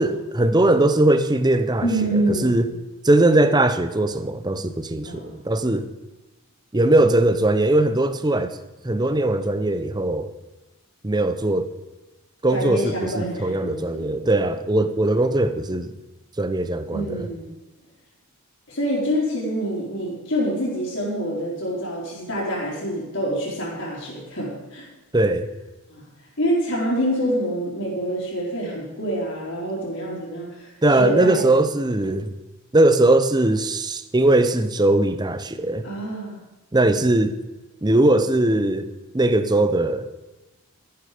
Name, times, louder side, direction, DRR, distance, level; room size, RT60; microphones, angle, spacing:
voice 1, 0.0-2.7 3.0-5.9 6.7-8.6 8.8-10.3 11.0-11.7 12.4-15.9 16.4-17.3 25.1-25.5 30.8-32.3 32.7-35.8 36.7-37.3 37.8-38.9 39.1-40.1, right 2 dB, 20° right, 10 dB, 0.7 m, -20 dB
voice 2, 1.8-2.6 5.0-5.4 12.5-14.1 16.9-17.5 18.7-24.9 25.9-26.1 26.4-31.6 35.8-36.4, equal, 60° left, -8 dB, 4.2 m, -26 dB
13.5 x 11.5 x 5.1 m, 1.1 s
head